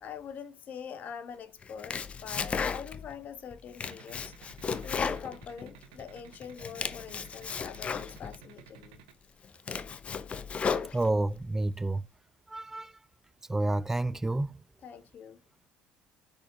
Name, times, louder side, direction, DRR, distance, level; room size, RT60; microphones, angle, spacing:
voice 1, 0.0-4.3 4.8-9.0 14.8-15.4, left 7 dB, 50° left, 1.1 m, -44 dB
Domestic sounds home sounds, 1.6-3.1 3.5-6.0 6.4-8.4 8.9-9.0 9.4-11.4, left 6 dB, 35° left, 0.7 m, -35 dB
sound 1, 3.8-9.1, right 11 dB, 85° right, 1.0 m, -53 dB
voice 2, 10.9-12.0 12.5-12.9 13.5-14.6, right 2 dB, 10° right, 0.3 m, -29 dB
6.3 x 5.0 x 6.7 m
supercardioid pair, 75°, 4 cm